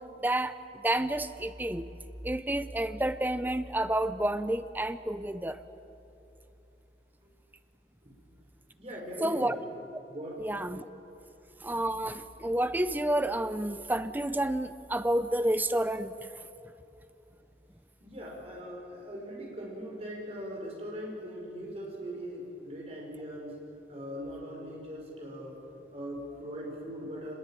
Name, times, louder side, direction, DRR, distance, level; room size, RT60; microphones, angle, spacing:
voice 1, 0.0-1.9 2.2-5.6 9.2-9.6 10.4-10.8 11.6-16.4, right 1 dB, 10° right, 12 dB, 0.7 m, -30 dB
voice 2, 8.8-9.6 10.1-10.4 18.0-23.6 23.9-25.6 25.9-27.4, equal, 35° right, -2 dB, 5.4 m, -40 dB
25.0 x 21.5 x 9.0 m, 2.8 s
head